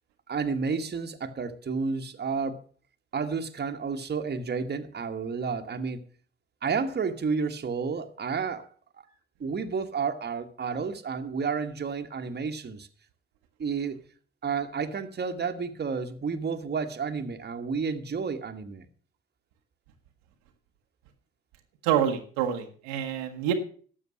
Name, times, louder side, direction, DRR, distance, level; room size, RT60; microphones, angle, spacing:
voice 1, 0.3-2.6 3.1-6.0 6.6-8.7 9.0-9.1 9.4-12.9 13.6-14.0 14.4-18.9, right 5 dB, 35° right, 6 dB, 1.4 m, -31 dB
voice 2, 21.8-23.5, right 10 dB, 75° right, 4 dB, 1.3 m, -27 dB
12.5 x 7.3 x 6.2 m, 0.43 s
hypercardioid pair, 45°, 29 cm